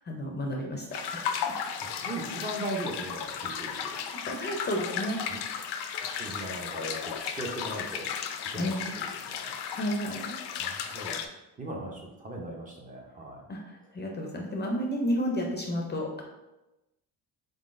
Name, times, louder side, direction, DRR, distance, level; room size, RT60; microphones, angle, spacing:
voice 1, 0.0-1.3 3.9-5.2 8.6-8.9 9.7-10.4 13.5-16.2, equal, 25° left, 0 dB, 0.5 m, -32 dB
sound 1, 0.9-11.3, left 7 dB, 80° left, 0.5 m, -35 dB
voice 2, 1.8-3.8 5.3-5.4 6.2-8.1 8.5-9.6 10.6-11.2 11.6-13.4, right 1 dB, 20° right, -1 dB, 0.6 m, -38 dB
4.0 x 3.7 x 2.5 m, 0.99 s
cardioid pair, 145°, 40 cm